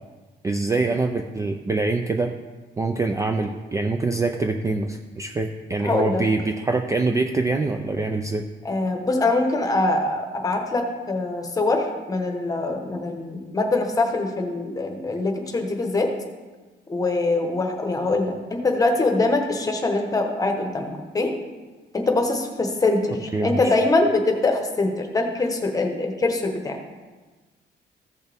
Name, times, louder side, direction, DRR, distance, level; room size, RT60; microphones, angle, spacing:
voice 1, 0.4-2.3 2.8-8.4 23.3-23.8, right 3 dB, 15° right, 5 dB, 0.4 m, -24 dB
voice 2, 5.8-6.2 8.6-16.1 16.9-21.3 21.9-26.8, left 2 dB, 20° left, 3 dB, 1.1 m, -23 dB
15.0 x 6.5 x 3.4 m, 1.3 s
cardioid pair, 180°, 18 cm